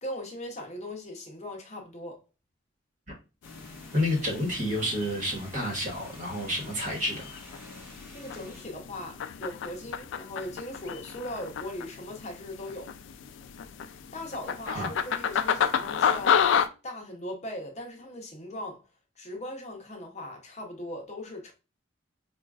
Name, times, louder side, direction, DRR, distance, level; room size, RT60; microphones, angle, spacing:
voice 1, 0.0-2.2 8.1-12.9 14.1-16.5 16.8-18.8 19.2-21.5, left 1 dB, 35° left, 0.7 m, -39 dB
sound 1, 3.4-16.7, left 7 dB, 65° left, 0.3 m, -31 dB
sound 2, 3.4-8.7, left 1 dB, 10° right, 1.1 m, -50 dB
voice 2, 3.9-7.3 14.6-14.9, left 1 dB, 40° right, 1.1 m, -29 dB
4.9 x 2.3 x 2.3 m
head